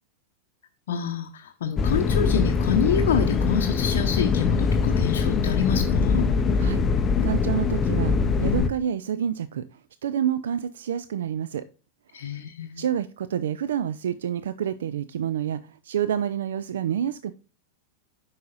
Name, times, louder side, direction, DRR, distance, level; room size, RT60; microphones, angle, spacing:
voice 1, 0.9-6.3 12.1-12.8, left 7 dB, 60° left, 2 dB, 0.7 m, -27 dB
sound 1, 1.8-8.7, left 5 dB, 25° left, 0.5 m, -23 dB
voice 2, 6.6-11.7 12.1-12.3 12.8-17.3, right 9 dB, 60° right, 14 dB, 0.3 m, -28 dB
9.1 x 5.6 x 2.5 m, 0.35 s
figure-of-eight pair, 90°, 0 cm